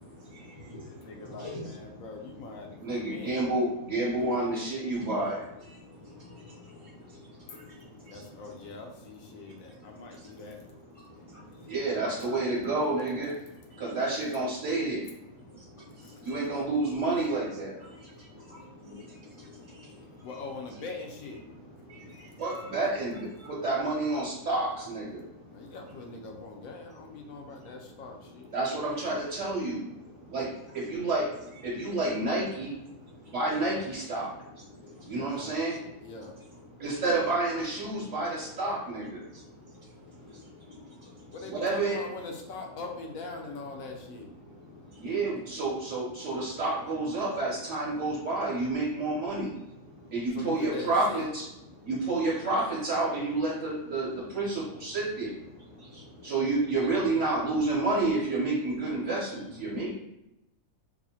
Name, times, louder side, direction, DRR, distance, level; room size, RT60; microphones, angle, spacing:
voice 1, 0.3-0.8 1.4-1.6 3.3-3.4 5.7-5.8 6.5-6.6 7.5-7.6 8.1-8.2 17.8-17.9 21.9-22.7 23.1-23.2 31.5-31.6 55.9-56.0, left 1 dB, 40° left, -7 dB, 0.5 m, -45 dB
voice 2, 0.8-3.4 8.1-10.6 11.9-12.2 16.0-16.1 20.2-21.4 25.5-28.5 33.6-33.8 35.1-35.6 36.0-36.3 41.3-44.3 50.3-51.3 56.7-57.1, left 3 dB, 75° left, 2 dB, 1.0 m, -42 dB
voice 3, 2.8-5.4 11.7-13.3 13.8-15.0 16.2-17.7 18.8-18.9 22.4-25.2 28.5-29.8 30.3-31.3 31.6-32.7 33.3-34.3 35.1-35.8 36.8-39.2 41.5-42.0 45.0-49.5 50.1-51.4 51.8-55.3 56.2-59.9, right 2 dB, 60° right, -6 dB, 1.1 m, -29 dB
4.6 x 2.1 x 2.8 m, 0.92 s
omnidirectional pair, 1.5 m